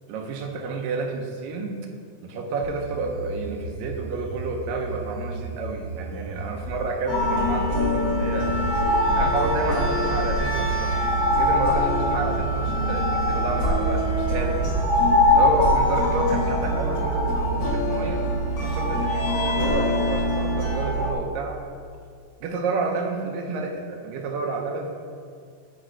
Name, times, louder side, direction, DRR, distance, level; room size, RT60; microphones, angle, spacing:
voice 1, 0.1-1.8 2.2-8.6 9.2-11.0 11.4-14.7 15.3-18.3 18.6-21.6 22.4-24.9, right 3 dB, 80° right, 2 dB, 2.5 m, -30 dB
sound 1, 2.6-18.6, right 2 dB, 60° right, 1.2 m, -36 dB
sound 2, 7.1-21.1, left 1 dB, 70° left, 1.0 m, -23 dB
11.5 x 5.1 x 4.5 m, 2.2 s
omnidirectional pair, 4.0 m